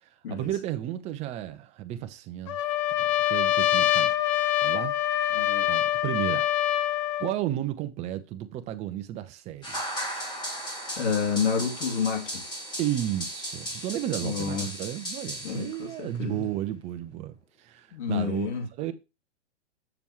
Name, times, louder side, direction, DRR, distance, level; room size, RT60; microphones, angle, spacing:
voice 1, 0.0-2.6 3.0-4.1 4.6-5.0 5.7-6.5 7.2-10.0 12.8-18.5 18.8-18.9, right 12 dB, 20° right, 0.6 m, -33 dB
Trumpet, 2.5-7.3, left 13 dB, 25° left, 0.4 m, -25 dB
voice 2, 5.3-5.7 11.0-12.4 14.2-14.7 15.4-16.5 17.9-18.7, left 6 dB, 70° left, 2.9 m, -29 dB
sound 1, 9.6-16.0, equal, 10° left, 2.2 m, -36 dB
7.1 x 6.9 x 3.1 m
hypercardioid pair, 140°, 36 cm